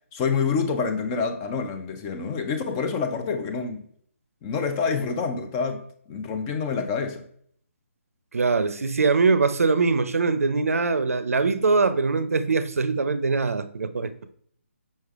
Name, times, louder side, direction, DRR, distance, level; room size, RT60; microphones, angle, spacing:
voice 1, 0.1-3.8 4.4-5.8 6.1-7.3, left 5 dB, 20° left, 0.4 m, -27 dB
voice 2, 8.3-14.1, right 4 dB, 85° right, 0.5 m, -22 dB
5.4 x 3.2 x 2.4 m
hypercardioid pair, 155°, 8 cm